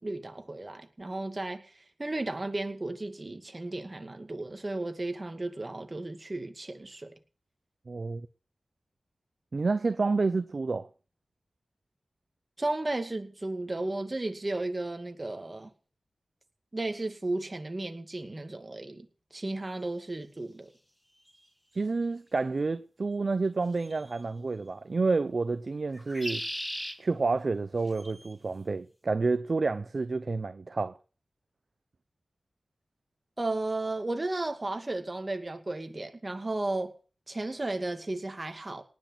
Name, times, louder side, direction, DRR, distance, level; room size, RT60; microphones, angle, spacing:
voice 1, 0.0-1.6 2.0-7.1 12.6-15.7 16.7-19.1 19.3-20.7 33.4-36.9 37.3-38.8, right 2 dB, 30° right, 2.3 m, -34 dB
voice 2, 7.9-8.3 9.5-10.9 21.7-26.4 27.0-31.0, right 3 dB, 55° right, 0.7 m, -29 dB
sound 1, 21.3-21.4 23.8-24.2 25.9-27.0 27.9-28.3, equal, 5° left, 2.1 m, -37 dB
18.5 x 6.3 x 8.1 m
wide cardioid pair, 70°, 0 cm